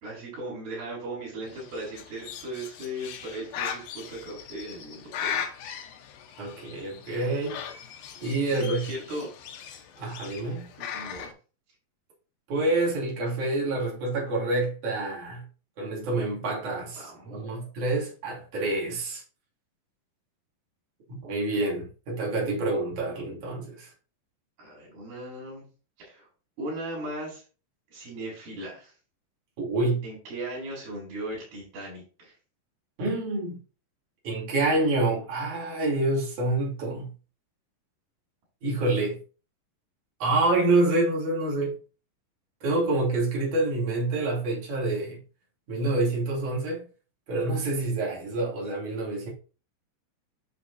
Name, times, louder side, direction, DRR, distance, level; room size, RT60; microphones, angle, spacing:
voice 1, 0.0-5.4 8.5-9.3 10.8-11.3 16.9-17.6 24.6-25.7 26.0-26.3 26.6-27.4 27.9-28.9 30.0-32.4, right 1 dB, 90° right, 5.7 m, -37 dB
Bird, 1.4-11.3, left 8 dB, 80° left, 2.8 m, -38 dB
voice 2, 6.4-7.6 8.2-8.8 10.0-10.7 12.5-15.4 15.8-19.2 21.1-23.9 29.6-30.0 33.0-33.6 34.2-37.1 38.6-39.2 40.2-41.8 42.6-45.2 45.7-46.9 47.3-49.3, right 2 dB, 55° right, 3.8 m, -27 dB
9.3 x 6.7 x 2.7 m
omnidirectional pair, 4.1 m